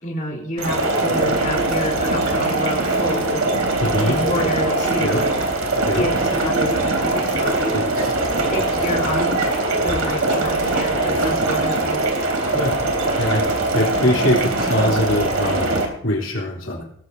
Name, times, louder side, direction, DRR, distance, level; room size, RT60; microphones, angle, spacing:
voice 1, 0.0-3.6 4.0-5.4 5.9-7.8 8.4-9.4 9.7-12.0, left 1 dB, 40° left, -2 dB, 4.2 m, -28 dB
sound 1, 0.6-15.9, right 2 dB, 85° right, 3.3 m, -21 dB
voice 2, 3.8-4.2 4.7-4.8 5.0-5.2 5.9-6.0 7.7-8.1 12.5-12.7 13.1-16.8, left 1 dB, 65° left, -3 dB, 3.6 m, -23 dB
20.5 x 14.5 x 2.8 m, 0.67 s
head